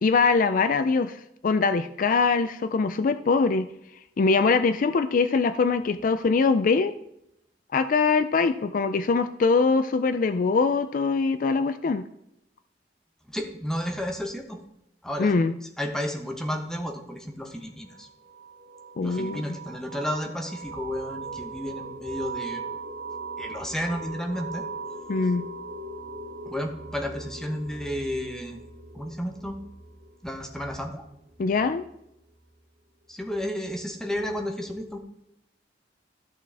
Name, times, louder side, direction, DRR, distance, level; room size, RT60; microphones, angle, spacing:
voice 1, 0.0-3.7 4.2-6.9 7.7-12.0 15.2-15.5 19.0-19.4 25.1-25.4 31.4-31.8, left 4 dB, 50° left, 11 dB, 0.4 m, -23 dB
voice 2, 13.3-14.6 15.0-15.3 15.8-18.1 19.0-22.6 23.4-24.6 26.5-28.6 28.9-29.6 30.2-31.0 33.1-35.0, equal, 5° left, 2 dB, 1.0 m, -32 dB
sound 1, 17.9-32.3, right 3 dB, 55° right, 1.4 m, -40 dB
13.5 x 6.1 x 3.5 m, 0.80 s
head